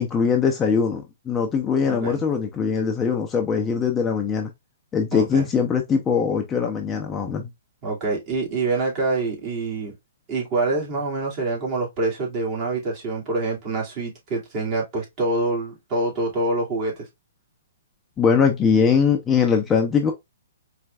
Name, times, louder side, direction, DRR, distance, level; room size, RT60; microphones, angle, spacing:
voice 1, 0.0-4.5 4.9-7.5 18.2-20.1, left 6 dB, 15° left, 0.6 m, -21 dB
voice 2, 1.9-2.2 5.1-5.4 7.8-9.9 10.3-17.1, right 2 dB, 35° right, 2.4 m, -26 dB
4.5 x 3.3 x 2.4 m
hypercardioid pair, 135°, 0 cm